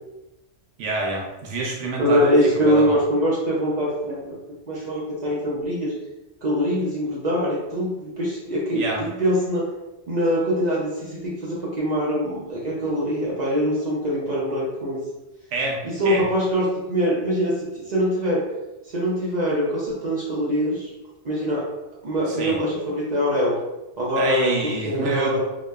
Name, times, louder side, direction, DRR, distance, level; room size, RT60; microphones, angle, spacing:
voice 1, 0.8-2.2 2.6-3.0 8.7-9.0 15.5-16.2 22.3-22.6 24.2-25.4, right 2 dB, 75° right, -1 dB, 0.9 m, -27 dB
voice 2, 2.0-4.4 4.7-5.9 6.4-9.7 10.1-15.0 15.8-18.5 18.9-20.9 21.2-21.7 22.0-23.6 24.0-25.4, equal, 50° right, -6 dB, 0.5 m, -23 dB
2.9 x 2.0 x 2.2 m, 0.99 s
omnidirectional pair, 1.3 m